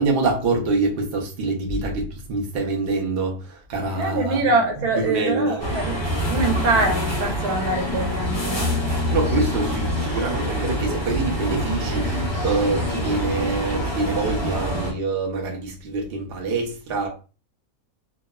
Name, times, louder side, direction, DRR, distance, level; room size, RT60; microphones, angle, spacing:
voice 1, 0.0-4.4 5.0-5.6 9.1-17.1, right 3 dB, 55° right, 0.7 m, -25 dB
voice 2, 3.9-6.0 6.3-8.8, right 3 dB, 85° right, 1.3 m, -24 dB
sound 1, 5.6-14.9, equal, 20° left, 0.8 m, -25 dB
2.8 x 2.1 x 2.2 m
omnidirectional pair, 1.6 m